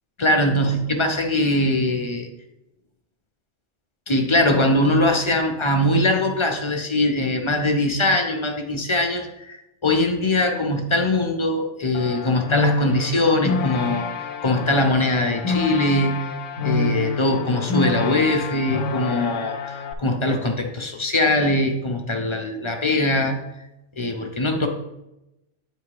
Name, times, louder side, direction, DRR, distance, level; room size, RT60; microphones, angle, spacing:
voice 1, 0.2-2.3 4.1-9.6 9.8-14.1 14.4-16.3 16.6-23.4 24.0-24.7, left 1 dB, 35° left, 3 dB, 0.5 m, -21 dB
sound 1, 11.9-19.9, left 3 dB, 85° left, 1.0 m, -27 dB
8.7 x 3.0 x 4.7 m, 0.93 s
omnidirectional pair, 1.3 m